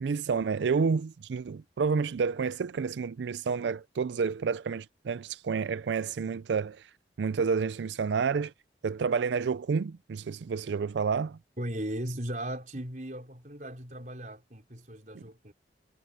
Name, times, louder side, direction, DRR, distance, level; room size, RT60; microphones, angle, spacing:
voice 1, 0.0-6.9 7.2-8.5 8.8-11.4 15.1-15.2, right 5 dB, 75° right, 0.4 m, -29 dB
voice 2, 11.6-15.5, right 1 dB, 45° right, 5.0 m, -37 dB
head